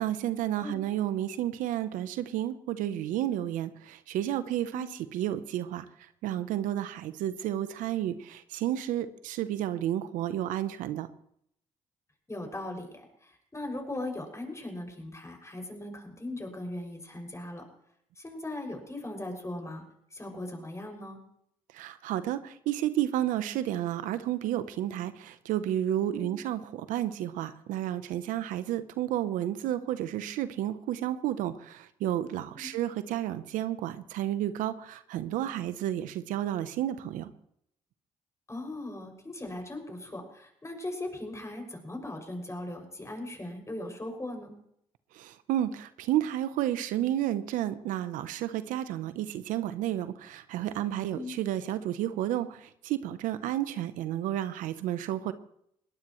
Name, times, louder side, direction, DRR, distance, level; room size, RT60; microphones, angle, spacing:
voice 1, 0.0-11.1 21.7-37.3 45.1-55.3, right 12 dB, 85° right, 12 dB, 0.8 m, -31 dB
voice 2, 12.3-17.6 18.2-19.8 20.1-21.2 26.1-26.4 32.5-32.7 38.5-44.5 51.1-51.3, left 1 dB, 20° left, 2 dB, 6.4 m, -39 dB
21.5 x 18.0 x 3.2 m, 0.72 s
supercardioid pair, 55°, 13 cm